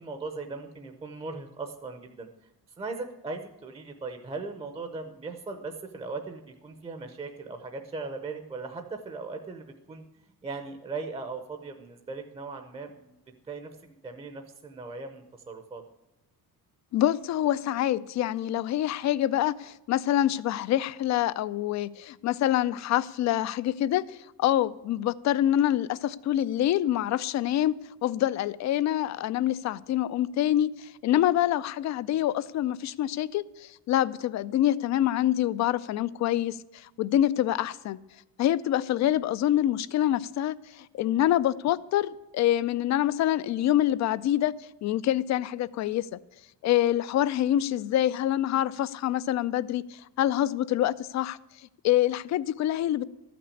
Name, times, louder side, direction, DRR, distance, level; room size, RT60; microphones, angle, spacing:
voice 1, 0.0-2.3 2.8-10.0 10.4-13.2 13.5-15.8, right 3 dB, 15° right, 0.7 m, -38 dB
voice 2, 16.9-27.7 28.0-38.0 38.4-44.5 44.8-46.2 46.6-51.4 51.8-53.0, left 12 dB, 50° left, 0.4 m, -26 dB
13.5 x 6.0 x 8.3 m
cardioid pair, 175°, 36 cm